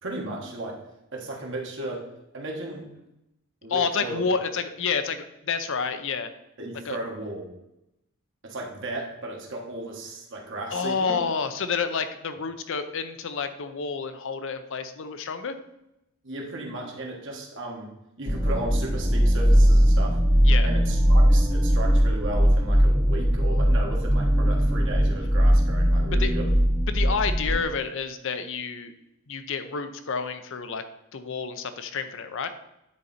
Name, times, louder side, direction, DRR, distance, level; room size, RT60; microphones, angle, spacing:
voice 1, 0.0-0.8 1.1-2.1 2.3-2.9 3.6-4.2 6.6-7.5 8.4-11.2 16.2-17.9 18.2-20.2 20.6-26.5, right 2 dB, 55° right, 0 dB, 1.5 m, -35 dB
voice 2, 3.7-6.3 6.8-7.0 10.7-15.6 20.4-20.7 26.1-26.3 26.9-28.9 29.3-30.8 31.1-32.5, left 5 dB, 60° left, 9 dB, 0.6 m, -29 dB
sound 1, 18.3-27.6, equal, 5° right, 0.3 m, -20 dB
9.6 x 4.0 x 4.2 m, 0.86 s
head